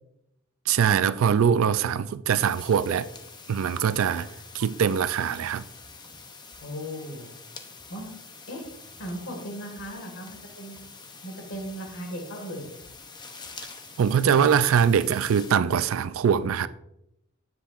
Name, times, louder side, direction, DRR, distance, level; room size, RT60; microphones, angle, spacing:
voice 1, 0.7-3.1 3.5-4.3 4.5-5.6 14.0-16.7, right 7 dB, 70° right, 0.3 m, -22 dB
sound 1, 2.3-15.5, left 4 dB, 20° left, 0.7 m, -46 dB
voice 2, 6.6-7.3 7.9-8.1 8.5-8.6 9.0-10.8 11.2-12.7, equal, 60° left, 1.9 m, -37 dB
10.0 x 7.6 x 2.5 m
head